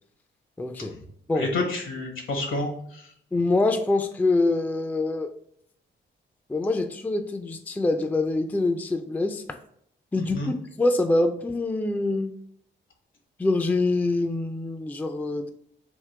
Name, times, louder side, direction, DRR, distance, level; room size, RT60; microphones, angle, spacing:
voice 1, 0.6-1.0 1.3-1.5 3.3-5.3 6.5-9.4 10.1-10.4 10.8-12.3 13.4-15.5, left 2 dB, 10° left, 7 dB, 0.4 m, -25 dB
voice 2, 1.3-3.1 10.1-10.5, left 2 dB, 80° left, 2 dB, 1.3 m, -29 dB
3.6 x 2.9 x 4.5 m, 0.68 s
cardioid pair, 85°, 21 cm